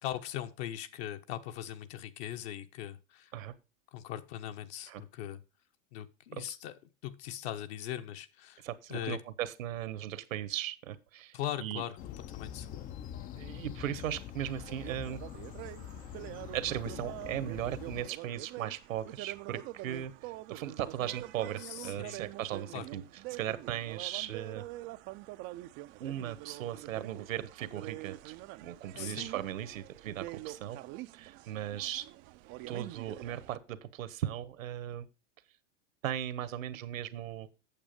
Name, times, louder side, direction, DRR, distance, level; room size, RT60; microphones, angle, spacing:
voice 1, 0.0-3.3 3.9-5.4 5.9-6.7 7.0-8.6 8.9-9.2 11.3-12.0 12.3-12.7 21.6-22.2 22.7-22.8 28.9-29.3, left 11 dB, 55° left, 1.3 m, -40 dB
voice 2, 8.6-11.8 13.4-15.2 16.5-23.0 23.3-24.6 26.0-30.8 31.1-32.1 32.7-35.1 36.0-37.5, right 11 dB, 85° right, 1.4 m, -37 dB
sound 1, 12.0-18.1, left 10 dB, 20° left, 0.5 m, -44 dB
sound 2, 14.6-33.6, right 18 dB, 30° right, 0.4 m, -45 dB
8.8 x 6.9 x 5.1 m
hypercardioid pair, 130°, 39 cm